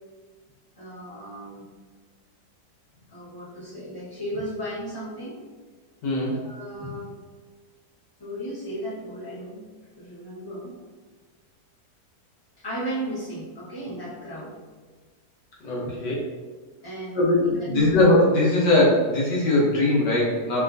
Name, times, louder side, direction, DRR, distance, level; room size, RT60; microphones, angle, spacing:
voice 1, 0.8-1.7 3.1-5.4 6.3-7.1 8.2-9.6 10.0-10.7 12.6-14.5 15.8-16.0 16.8-17.9, right 1 dB, 15° left, -9 dB, 1.2 m, -35 dB
voice 2, 6.0-6.4 15.6-16.3 17.1-20.6, left 2 dB, 90° left, -5 dB, 1.7 m, -20 dB
4.8 x 3.0 x 2.6 m, 1.4 s
omnidirectional pair, 1.8 m